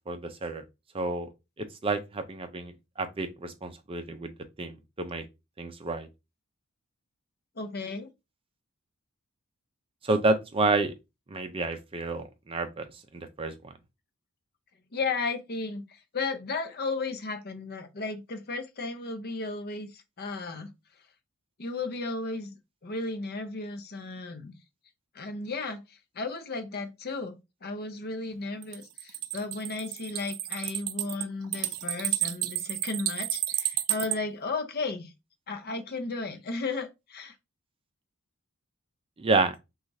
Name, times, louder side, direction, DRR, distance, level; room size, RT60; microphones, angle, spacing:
voice 1, 0.1-0.6 0.9-1.3 1.8-2.7 3.0-4.3 4.6-5.2 5.6-6.1 10.0-10.9 11.3-12.9 13.1-13.5 39.2-39.5, right 3 dB, 25° right, 0.5 m, -29 dB
voice 2, 7.6-8.1 14.9-20.7 21.6-22.6 22.8-24.5 25.1-35.1 35.5-37.3, left 3 dB, 45° left, 0.7 m, -34 dB
sound 1, 28.6-34.2, right 14 dB, 90° right, 0.5 m, -31 dB
6.1 x 2.4 x 2.7 m
head